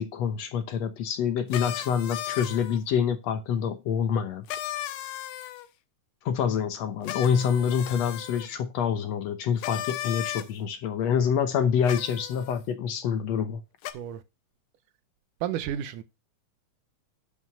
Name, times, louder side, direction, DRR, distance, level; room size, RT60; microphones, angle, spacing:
voice 1, 0.0-4.4 6.3-13.6, left 7 dB, 65° left, 1.8 m, -26 dB
sound 1, 1.5-2.8 4.5-5.7 7.0-8.5 9.6-10.5 11.9-12.6 13.8-13.9, left 13 dB, 90° left, 2.5 m, -35 dB
voice 2, 15.4-16.0, right 10 dB, 80° right, 2.4 m, -31 dB
11.0 x 5.2 x 5.7 m
omnidirectional pair, 3.7 m